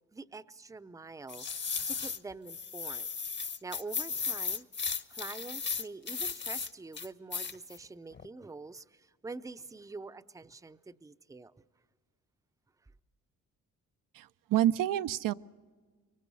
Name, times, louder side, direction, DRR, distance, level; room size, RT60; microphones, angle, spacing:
voice 1, 0.1-1.5 1.9-3.1 3.6-11.6, right 3 dB, 10° right, 12 dB, 0.6 m, -46 dB
sound 1, 1.3-2.2 2.5-6.7 6.9-7.8 8.1-8.3, left 5 dB, 35° left, 1.0 m, -35 dB
voice 2, 14.1-15.3, right 12 dB, 80° right, 12 dB, 0.6 m, -28 dB
25.0 x 23.0 x 5.5 m, 1.5 s
cardioid pair, 95°, 32 cm